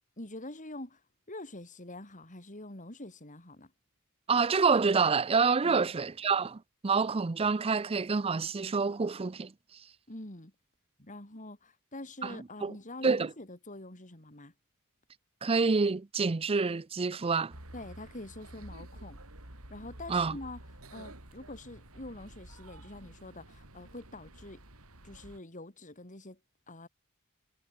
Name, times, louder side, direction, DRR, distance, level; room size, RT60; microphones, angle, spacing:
voice 1, 0.2-1.0 1.3-3.7 5.6-5.8 10.1-10.5 11.0-14.5 17.7-19.2 19.7-20.6 20.9-24.6 25.0-26.4 26.7-26.9, left 2 dB, 35° left, 3.7 m, -45 dB
voice 2, 4.3-9.5 12.2-12.4 12.6-12.7 13.0-13.3 15.4-17.5 20.1-20.4, right 4 dB, 25° right, 0.5 m, -27 dB
sound 1, 17.5-25.4, right 1 dB, 75° right, 5.3 m, -50 dB
head